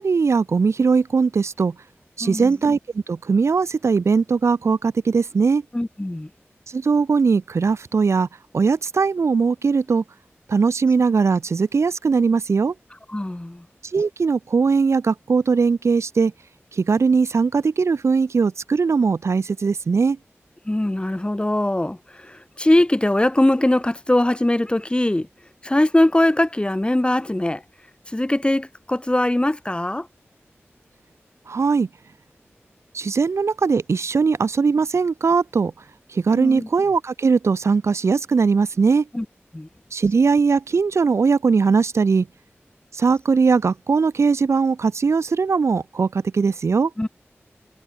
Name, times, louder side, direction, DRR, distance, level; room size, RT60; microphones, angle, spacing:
voice 1, 0.0-1.7 2.2-5.6 6.7-8.3 8.5-10.0 10.5-12.7 13.9-16.3 16.7-20.2 31.5-31.9 32.9-35.7 36.1-39.1 39.9-42.3 42.9-46.9, right 5 dB, 90° right, 1.4 m, -20 dB
voice 2, 2.2-2.5 5.7-6.3 13.1-13.6 20.6-25.3 25.6-27.6 28.1-30.1 36.3-36.7 39.1-39.2 39.5-39.7 47.0-47.1, left 1 dB, 20° left, 3.4 m, -21 dB
wide cardioid pair, 50°, 5 cm